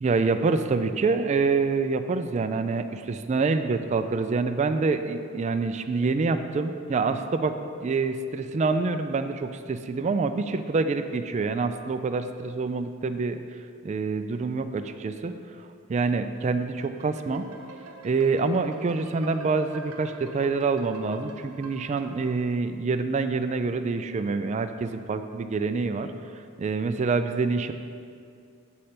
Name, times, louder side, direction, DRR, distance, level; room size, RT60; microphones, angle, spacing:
voice 1, 0.0-7.5 7.8-13.4 13.8-15.3 15.9-17.5 18.0-26.1 26.6-27.7, right 4 dB, 30° right, 8 dB, 0.3 m, -26 dB
sound 1, 16.8-22.3, right 2 dB, 90° right, 0.8 m, -45 dB
8.3 x 6.4 x 4.3 m, 2.3 s
head